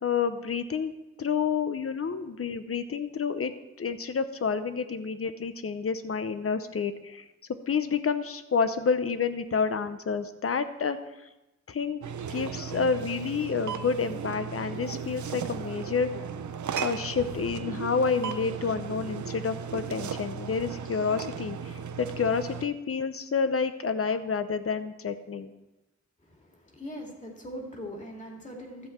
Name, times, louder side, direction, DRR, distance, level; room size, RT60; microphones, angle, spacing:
voice 1, 0.0-0.9 1.2-7.2 7.7-11.0 11.7-12.0 12.3-16.1 16.8-25.5, left 5 dB, 50° left, 11 dB, 0.7 m, -29 dB
sound 1, 12.0-22.7, right 7 dB, 80° right, 0.6 m, -36 dB
voice 2, 26.2-28.9, equal, 25° left, 0 dB, 2.1 m, -41 dB
12.5 x 7.9 x 4.5 m, 0.99 s
wide cardioid pair, 120°, 29 cm